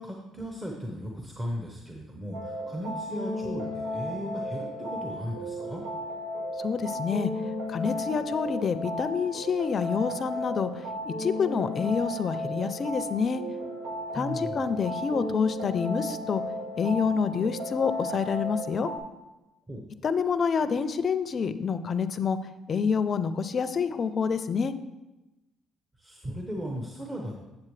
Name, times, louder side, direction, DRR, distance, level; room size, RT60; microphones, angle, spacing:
voice 1, 0.0-5.8 14.1-14.7 19.7-19.9 26.0-27.3, equal, 20° right, 0 dB, 1.0 m, -36 dB
sound 1, 2.3-19.0, left 1 dB, 90° right, 1.2 m, -34 dB
voice 2, 6.6-7.3 7.7-10.7 11.0-13.4 14.1-16.4 16.8-18.9 20.0-22.4 22.7-24.7, left 6 dB, 45° left, 12 dB, 0.5 m, -27 dB
8.6 x 7.3 x 3.2 m, 1.0 s
cardioid pair, 100°, 0 cm